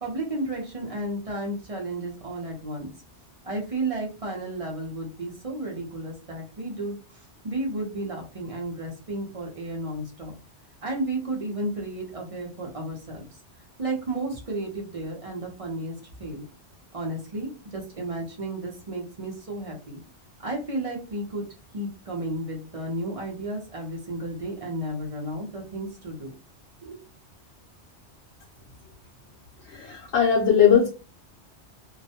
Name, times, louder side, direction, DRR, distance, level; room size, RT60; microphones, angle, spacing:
voice 1, 0.0-2.9 3.4-10.3 10.8-13.2 13.8-16.4 16.9-20.0 20.4-21.5 21.7-26.3 26.8-27.0, right 1 dB, 40° right, 0 dB, 0.6 m, -33 dB
voice 2, 29.6-30.9, left 7 dB, 75° left, -3 dB, 0.9 m, -19 dB
2.3 x 2.1 x 2.7 m, 0.34 s
omnidirectional pair, 1.2 m